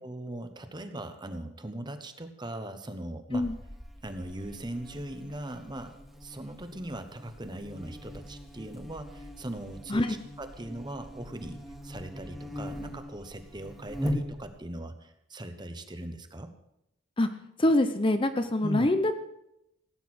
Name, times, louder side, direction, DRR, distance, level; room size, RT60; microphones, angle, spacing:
voice 1, 0.0-3.5 4.0-5.9 6.2-10.1 10.4-16.5 18.6-18.9, right 1 dB, 20° right, 8 dB, 1.0 m, -39 dB
Buzz, 3.3-14.7, equal, ahead, 1.7 m, -40 dB
voice 2, 17.6-19.1, left 1 dB, 25° left, 9 dB, 0.7 m, -24 dB
17.0 x 9.2 x 6.2 m, 0.83 s
head